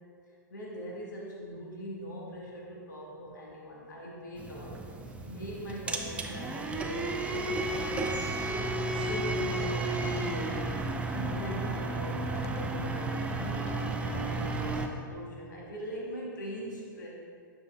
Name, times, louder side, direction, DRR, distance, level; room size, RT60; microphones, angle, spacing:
voice 1, 0.5-4.8 5.3-10.6 11.1-17.1, equal, 65° left, -3 dB, 1.4 m, -41 dB
sound 1, 4.4-14.9, right 2 dB, 10° right, 0.4 m, -33 dB
sound 2, 9.9-14.6, left 5 dB, 45° left, 0.5 m, -49 dB
9.6 x 6.0 x 2.3 m, 2.3 s
figure-of-eight pair, 100°, 11 cm